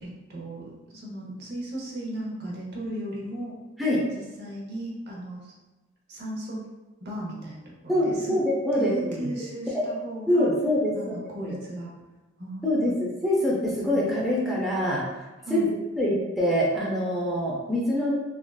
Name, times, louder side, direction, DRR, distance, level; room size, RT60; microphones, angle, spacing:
voice 1, 0.0-3.6 4.1-5.5 6.1-6.7 7.0-8.4 8.7-10.5 10.9-11.9 12.4-13.0 13.8-14.6 15.4-15.7, right 1 dB, 55° right, -3 dB, 0.8 m, -36 dB
voice 2, 7.9-9.3 9.7-9.8 10.3-11.1 11.4-11.5 12.6-15.0 15.5-15.6 16.0-18.1, left 1 dB, ahead, -6 dB, 0.5 m, -25 dB
3.4 x 2.4 x 2.2 m, 1.2 s
head